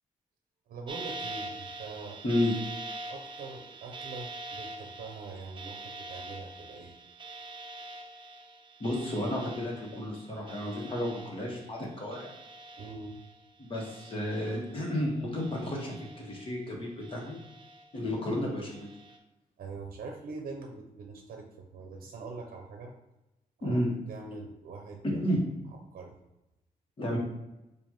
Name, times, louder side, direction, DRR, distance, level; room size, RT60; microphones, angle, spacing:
voice 1, 0.7-2.2 3.1-7.0 12.8-13.2 19.6-22.9 23.6-23.8 24.1-25.4 25.7-26.2, right 4 dB, 80° right, 2 dB, 0.6 m, -43 dB
sound 1, 0.9-13.4 13.7-15.0 15.4-16.6 17.0-18.1 18.6-19.2, right 2 dB, 35° right, 0.6 m, -44 dB
voice 2, 8.8-12.3 13.6-17.3 17.9-18.9 23.6-23.9 25.0-25.4 27.0-27.2, left 1 dB, 35° left, -1 dB, 1.3 m, -32 dB
6.9 x 2.6 x 2.9 m, 0.94 s
wide cardioid pair, 130°, 15 cm